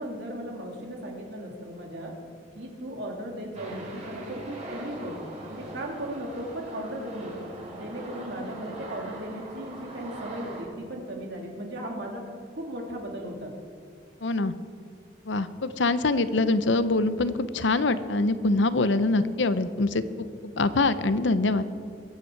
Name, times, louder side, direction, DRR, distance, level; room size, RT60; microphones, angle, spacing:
voice 1, 0.0-2.1 2.5-5.2 5.5-7.5 7.7-12.2 12.6-13.5, right 1 dB, 70° right, 0 dB, 2.9 m, -36 dB
sound 1, 3.5-10.6, right 1 dB, 35° right, 4.2 m, -41 dB
voice 2, 14.2-14.5 15.3-20.3 20.6-21.6, left 2 dB, 75° left, 13 dB, 0.7 m, -24 dB
22.5 x 9.2 x 4.7 m, 2.3 s
head